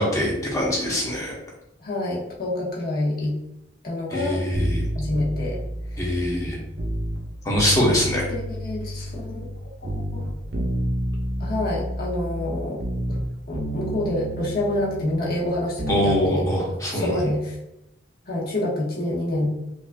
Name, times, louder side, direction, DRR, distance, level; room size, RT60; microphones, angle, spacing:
voice 1, 0.0-1.3 4.1-4.9 6.0-6.6 7.4-8.3 15.9-17.2, left 1 dB, 15° left, -3 dB, 0.9 m, -23 dB
voice 2, 1.8-3.4 3.8-4.4 4.9-5.6 5.9-6.2 8.3-9.4 10.1-10.2 11.4-12.8 13.1-13.2 13.5-16.4 16.9-17.6 18.3-19.5, left 1 dB, 50° left, -5 dB, 1.1 m, -27 dB
sound 1, 4.5-7.2 7.5-9.6 9.8-13.3 13.5-16.1 16.4-16.5, right 1 dB, 55° right, 0.6 m, -30 dB
5.2 x 2.5 x 2.2 m, 0.87 s
head